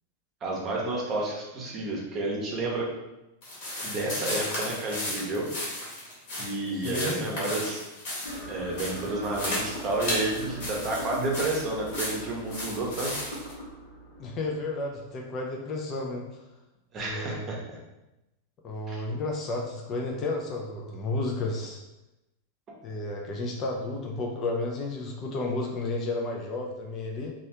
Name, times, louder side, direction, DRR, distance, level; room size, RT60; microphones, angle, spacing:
voice 1, 0.4-2.9 3.8-5.5 6.4-7.8 8.5-13.1 16.9-17.6 18.9-19.0, right 2 dB, 30° right, -2 dB, 0.8 m, -30 dB
sound 1, 3.4-13.5, left 1 dB, 45° left, 1.3 m, -35 dB
voice 2, 6.7-7.3 14.2-16.3 17.0-17.5 18.6-21.8 22.8-27.3, left 2 dB, 30° left, 0 dB, 0.5 m, -32 dB
sound 2, 8.3-15.3, equal, 65° left, 0.7 m, -41 dB
3.0 x 2.4 x 2.9 m, 0.95 s
figure-of-eight pair, 90°, 0 cm